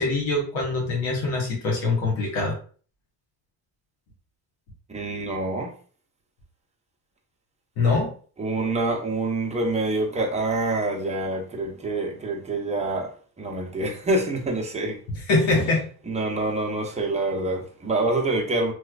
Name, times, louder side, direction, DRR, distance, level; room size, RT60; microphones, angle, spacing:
voice 1, 0.0-2.6 7.8-8.1 15.3-15.9, left 3 dB, 80° left, 1.4 m, -23 dB
voice 2, 4.9-5.7 8.4-15.0 15.3-15.4 16.1-18.7, right 2 dB, 15° right, 0.7 m, -26 dB
3.1 x 3.1 x 2.4 m
cardioid pair, 105°, 46 cm